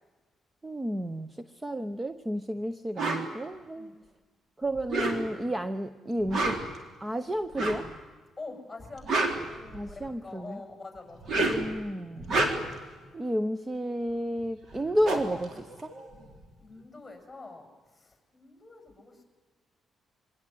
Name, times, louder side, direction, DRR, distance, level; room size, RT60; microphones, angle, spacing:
voice 1, 0.6-1.3 1.6-3.9 4.6-6.6 7.0-7.9 9.7-10.6 11.4-12.3 13.1-15.9, equal, 15° right, 12 dB, 0.9 m, -31 dB
sound 1, 3.0-3.3 4.8-5.5 6.2-6.8 7.5-7.9 8.8-10.1 11.1-11.7 12.2-12.8 14.4-14.5 14.7-16.4, right 2 dB, 55° right, 3.8 m, -29 dB
voice 2, 8.4-11.3 16.6-17.7 17.9-19.2, left 3 dB, 15° left, 4 dB, 7.0 m, -45 dB
24.0 x 18.0 x 9.4 m, 1.3 s
cardioid pair, 90°, 0 cm